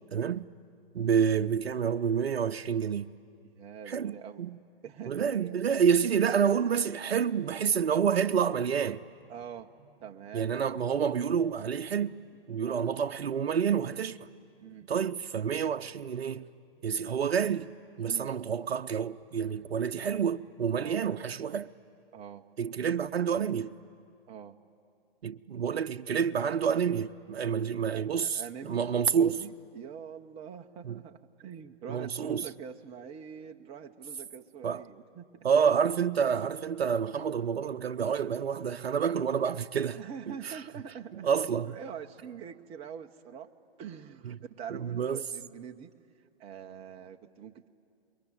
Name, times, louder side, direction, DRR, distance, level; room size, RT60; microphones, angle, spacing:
voice 1, 0.1-0.5 0.9-3.1 3.9-4.1 4.4-4.6 5.1-9.0 10.3-12.2 12.5-14.3 14.9-16.5 16.8-17.7 18.0-21.7 22.6-23.7 25.2-29.4 30.9-31.0 31.9-32.4 34.6-34.8 35.4-40.0 40.4-40.6 41.2-41.7 44.7-45.2, right 7 dB, 75° right, 0.6 m, -28 dB
voice 2, 3.4-4.5 4.8-6.0 9.3-9.7 10.0-10.5 12.6-12.9 14.6-14.9 18.0-18.3 20.8-21.1 22.1-22.5 24.3-24.6 27.9-35.5 39.9-41.3 41.6-47.7, right 8 dB, 20° right, 0.8 m, -45 dB
sound 1, 9.0-19.8, right 3 dB, 10° left, 2.4 m, -64 dB
27.0 x 22.5 x 9.3 m
figure-of-eight pair, 125°, 31 cm